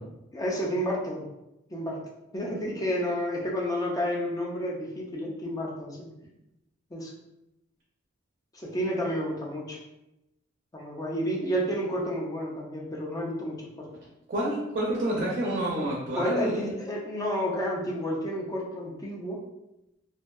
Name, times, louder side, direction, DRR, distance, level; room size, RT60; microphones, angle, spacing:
voice 1, 0.3-1.3 1.7-2.0 2.3-6.0 6.9-7.1 8.5-9.8 10.7-13.9 16.2-19.4, equal, 20° left, -2 dB, 0.4 m, -30 dB
voice 2, 14.3-16.7, right 1 dB, 45° right, -4 dB, 0.5 m, -28 dB
2.6 x 2.2 x 2.2 m, 0.90 s
head